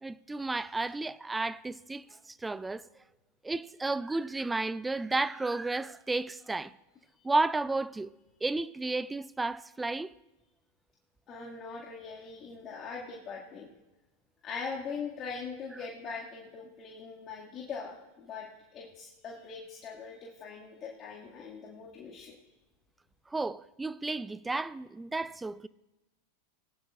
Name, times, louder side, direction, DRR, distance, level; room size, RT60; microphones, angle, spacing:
voice 1, 0.0-2.8 3.4-6.7 7.2-8.1 8.4-10.1 23.3-25.7, right 3 dB, 10° right, 0.4 m, -32 dB
voice 2, 11.3-13.7 14.4-22.4, left 5 dB, 35° left, 2.0 m, -41 dB
19.5 x 11.5 x 2.4 m
hypercardioid pair, 95°, 0 cm